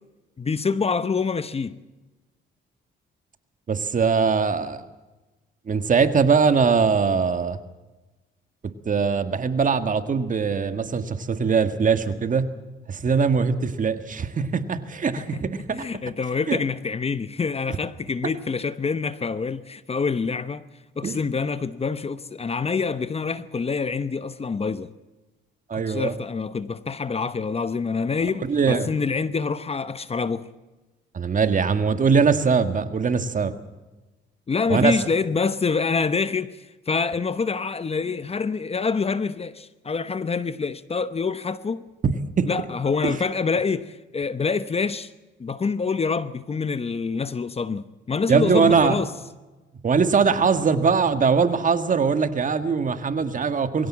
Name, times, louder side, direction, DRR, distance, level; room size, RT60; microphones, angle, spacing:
voice 1, 0.4-1.8 15.2-15.4 15.7-20.6 21.0-24.9 25.7-30.5 34.5-41.9 42.4-45.1 45.4-49.1, left 5 dB, 30° left, 0.9 m, -26 dB
voice 2, 3.7-4.8 5.7-7.6 8.9-12.5 12.9-15.9 16.5-16.6 21.0-21.2 25.7-26.1 28.5-28.9 31.1-33.6 34.7-35.0 42.0-42.5 43.0-43.2 48.3-49.0 49.8-53.9, right 5 dB, 40° right, 1.7 m, -21 dB
22.5 x 16.5 x 7.4 m
cardioid pair, 90°, 20 cm